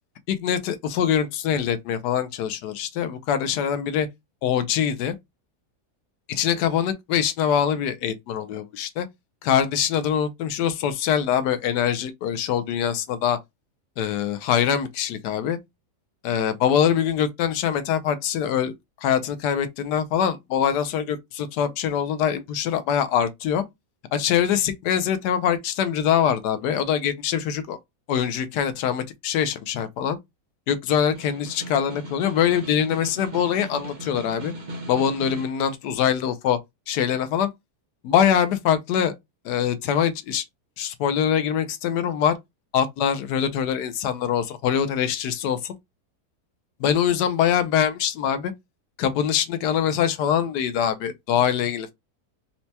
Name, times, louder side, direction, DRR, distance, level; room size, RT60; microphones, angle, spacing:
voice 1, 0.3-4.1 4.4-5.1 6.3-9.1 9.4-13.4 14.0-15.6 16.2-18.7 19.0-23.6 24.1-27.8 28.1-30.2 30.7-34.5 34.9-36.6 36.9-37.5 38.0-39.1 39.4-40.4 40.8-42.4 42.7-45.7 46.8-48.5 49.0-51.9, left 9 dB, 85° left, 1.2 m, -23 dB
Snare drum, 31.1-35.6, right 1 dB, 40° right, 0.6 m, -38 dB
4.3 x 2.1 x 2.7 m
omnidirectional pair, 1.8 m